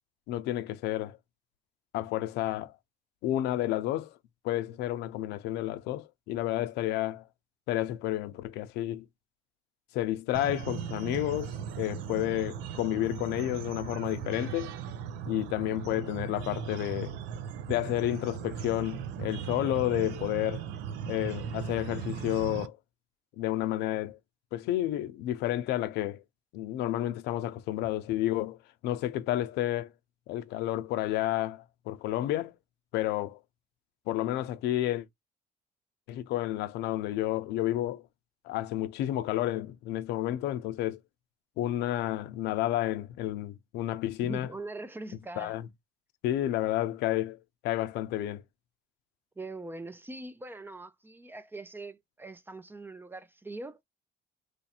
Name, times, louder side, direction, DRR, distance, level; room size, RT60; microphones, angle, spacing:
voice 1, 0.3-1.2 1.9-2.7 3.2-4.1 4.4-7.2 7.7-9.1 9.9-14.8 15.3-17.1 17.7-20.6 21.1-22.8 23.4-24.2 24.5-26.2 26.5-28.6 28.8-29.9 30.3-32.5 32.9-33.4 34.1-35.1 36.1-38.0 38.4-41.0 41.6-44.5 45.4-45.7 46.2-48.4, left 14 dB, 90° left, 0.6 m, -31 dB
sound 1, 10.3-22.7, right 8 dB, 90° right, 0.5 m, -38 dB
voice 2, 44.2-45.5 49.4-53.8, right 2 dB, 10° right, 0.5 m, -42 dB
3.1 x 2.5 x 4.2 m
cardioid pair, 110°, 17 cm